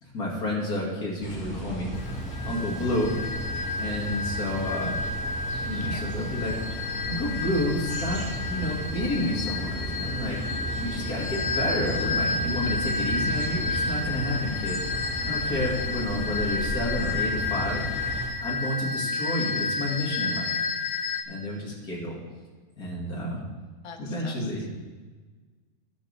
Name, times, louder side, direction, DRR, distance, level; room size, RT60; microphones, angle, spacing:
voice 1, 0.0-3.1 3.8-5.0 5.6-6.6 7.1-10.4 10.7-17.8 18.4-20.6 21.3-22.2 22.8-23.4 24.0-24.7, left 1 dB, 90° left, -4 dB, 3.2 m, -30 dB
sound 1, 1.2-18.3, right 1 dB, 5° left, 2.5 m, -34 dB
sound 2, 1.9-21.2, left 3 dB, 75° left, 1.3 m, -31 dB
voice 2, 23.8-24.7, left 5 dB, 30° left, 5 dB, 0.7 m, -45 dB
19.0 x 6.6 x 3.6 m, 1.4 s
omnidirectional pair, 1.5 m